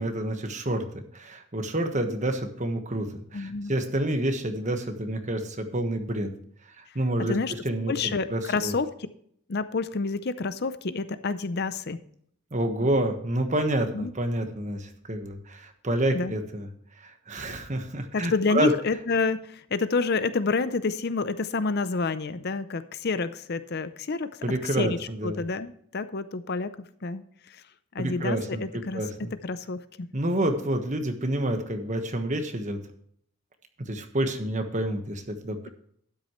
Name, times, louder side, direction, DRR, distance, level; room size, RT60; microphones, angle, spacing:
voice 1, 0.0-6.3 6.8-7.3 7.6-8.7 12.5-16.7 17.0-18.7 24.4-25.4 28.0-28.6 28.9-29.3 30.1-32.8 33.9-35.7, right 1 dB, 35° right, 6 dB, 1.4 m, -28 dB
voice 2, 3.3-3.7 7.2-7.5 7.9-8.9 9.5-12.0 13.9-14.1 16.1-16.3 18.1-24.3 24.8-25.0 25.2-26.7 27.0-27.6 27.9-29.0 29.3-30.1, left 4 dB, 50° left, 13 dB, 0.6 m, -28 dB
12.5 x 9.7 x 3.1 m, 0.64 s
head